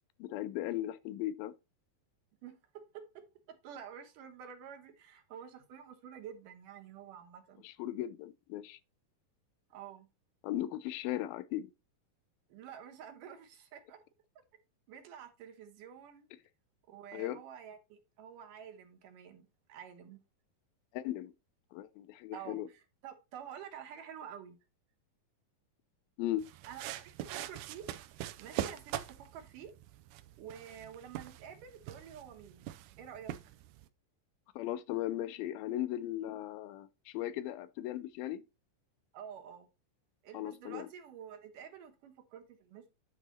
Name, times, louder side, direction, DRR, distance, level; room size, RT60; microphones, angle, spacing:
voice 1, 0.2-1.5 7.6-8.8 10.4-11.7 17.1-17.4 20.9-21.3 21.7-22.7 26.2-26.5 34.6-38.4 40.3-40.9, left 13 dB, 90° left, 2.4 m, -37 dB
voice 2, 2.4-7.6 9.7-10.1 12.5-14.0 14.9-16.3 16.9-20.2 22.3-24.6 26.7-27.9 28.4-29.7 30.4-32.7 33.0-33.3 39.1-39.7 40.2-42.9, right 8 dB, 70° right, 2.5 m, -49 dB
sound 1, 26.4-33.9, right 13 dB, 85° right, 1.7 m, -43 dB
9.6 x 4.7 x 4.2 m
omnidirectional pair, 4.2 m